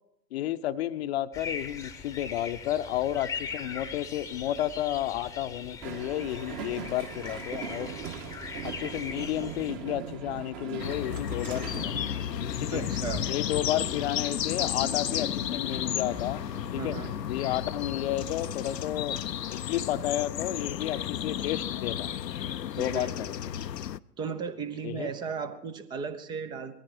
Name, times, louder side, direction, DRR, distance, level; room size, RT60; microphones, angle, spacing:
voice 1, 0.3-7.9 8.6-12.1 12.4-12.8 13.3-16.4 16.7-17.0 17.3-19.2 19.5-22.1 22.8-23.7 24.8-25.1, left 13 dB, 40° left, 13 dB, 0.8 m, -32 dB
sound 1, 1.3-9.7, left 5 dB, 5° left, 1.0 m, -40 dB
Train, 5.8-18.3, right 7 dB, 30° right, 1.9 m, -42 dB
sound 2, 10.8-24.0, left 10 dB, 75° left, 0.7 m, -33 dB
voice 2, 12.7-13.2 16.8-17.1 22.8-23.3 24.2-26.8, right 5 dB, 10° right, 13 dB, 0.5 m, -36 dB
20.5 x 15.0 x 4.6 m, 0.74 s
figure-of-eight pair, 105°, 50 cm